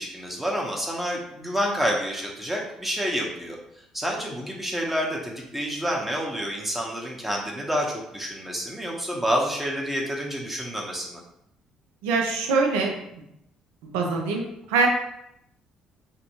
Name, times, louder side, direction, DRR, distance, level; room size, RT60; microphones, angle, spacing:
voice 1, 0.0-3.6 3.9-11.2, equal, 10° right, -2 dB, 0.7 m, -28 dB
voice 2, 12.0-13.2 13.8-14.9, right 4 dB, 80° right, 2 dB, 0.4 m, -24 dB
2.5 x 2.1 x 2.8 m, 0.79 s
hypercardioid pair, 55°, 2 cm